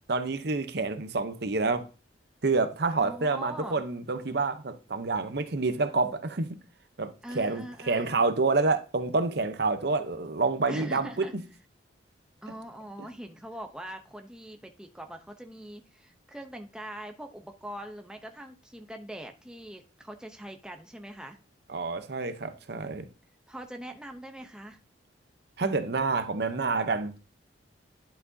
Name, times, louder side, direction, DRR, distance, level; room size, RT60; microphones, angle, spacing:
voice 1, 0.1-1.8 2.4-6.5 7.0-11.3 21.7-23.1 25.6-27.2, right 3 dB, 55° right, 0.8 m, -28 dB
voice 2, 3.0-3.8 7.2-8.1 10.7-11.3 12.4-21.4 23.5-24.8, right 1 dB, 5° right, 0.7 m, -42 dB
11.0 x 5.9 x 2.7 m
head